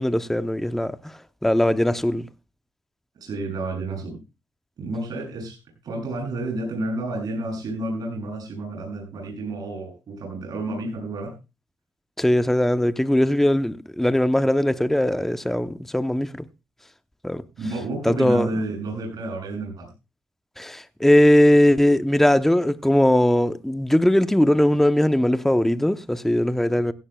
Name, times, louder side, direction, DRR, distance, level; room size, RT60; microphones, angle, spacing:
voice 1, 0.0-2.3 12.2-16.5 17.2-17.4 18.0-18.6 20.6-26.9, left 1 dB, 5° left, 0.8 m, -20 dB
voice 2, 3.2-4.2 4.8-5.6 5.8-11.3 17.6-19.9, right 2 dB, 65° right, 7.7 m, -30 dB
17.0 x 16.0 x 2.3 m
supercardioid pair, 65°, 7 cm